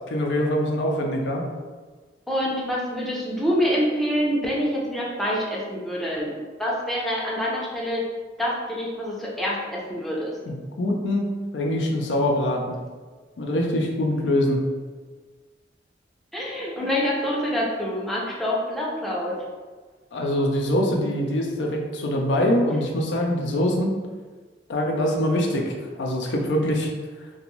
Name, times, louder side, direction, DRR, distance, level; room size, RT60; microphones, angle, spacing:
voice 1, 0.1-1.4 10.5-11.3 11.5-12.8 13.4-14.7 20.1-23.9 24.7-26.9, left 1 dB, 85° left, 1 dB, 0.4 m, -24 dB
voice 2, 2.3-6.3 6.6-8.0 8.4-10.4 16.3-19.4, equal, ahead, -5 dB, 0.4 m, -26 dB
2.5 x 2.2 x 2.9 m, 1.4 s
head